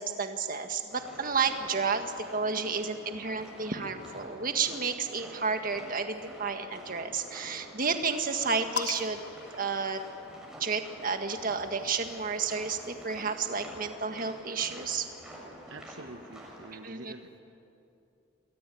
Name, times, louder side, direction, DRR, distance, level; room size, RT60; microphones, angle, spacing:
voice 1, 0.0-9.2 9.5-10.0 10.6-15.1 16.8-17.1, right 5 dB, 45° right, 6 dB, 1.8 m, -31 dB
sound 1, 0.9-16.7, equal, 5° right, 6.4 m, -48 dB
sound 2, 8.8-10.6 11.7-13.3, left 7 dB, 55° left, 0.9 m, -41 dB
voice 2, 15.7-17.4, right 2 dB, 65° right, 5 dB, 1.1 m, -47 dB
28.0 x 21.5 x 9.3 m, 2.7 s
head